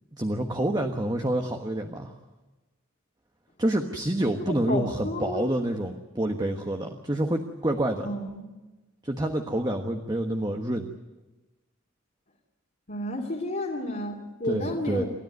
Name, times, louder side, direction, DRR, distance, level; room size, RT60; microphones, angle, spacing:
voice 1, 0.2-2.1 3.6-8.1 9.0-10.9 14.4-15.0, right 1 dB, 20° right, 4 dB, 1.3 m, -28 dB
voice 2, 4.5-5.5 8.0-8.4 12.9-15.1, left 1 dB, 45° left, -4 dB, 2.8 m, -31 dB
29.0 x 13.5 x 9.5 m, 1.1 s
head